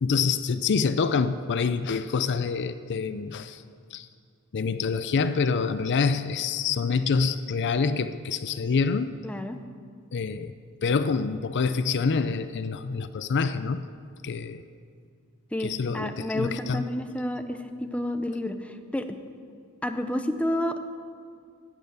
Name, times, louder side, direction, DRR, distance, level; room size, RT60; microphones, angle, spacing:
voice 1, 0.0-3.6 3.9-4.1 4.5-9.1 10.1-10.5 10.8-13.8 14.2-14.6 15.6-16.8, left 5 dB, 55° left, 12 dB, 0.5 m, -26 dB
voice 2, 9.2-9.6 15.5-19.1 19.8-21.0, left 1 dB, 5° left, 7 dB, 0.6 m, -30 dB
12.0 x 8.8 x 7.9 m, 2.2 s
head